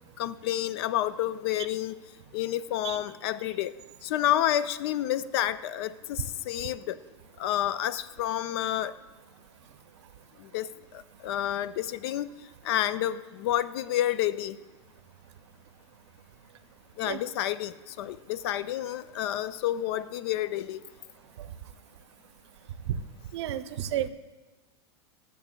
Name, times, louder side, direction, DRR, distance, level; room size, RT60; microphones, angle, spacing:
voice 1, 0.2-1.9 2.3-3.7 4.0-7.0 7.4-8.9 10.4-10.7 10.9-12.3 12.6-14.6 17.0-20.8, left 12 dB, 65° left, 16 dB, 0.4 m, -29 dB
voice 2, 23.3-24.1, right 11 dB, 75° right, 12 dB, 0.6 m, -31 dB
19.0 x 7.0 x 2.2 m, 1.3 s
hypercardioid pair, 120°, 14 cm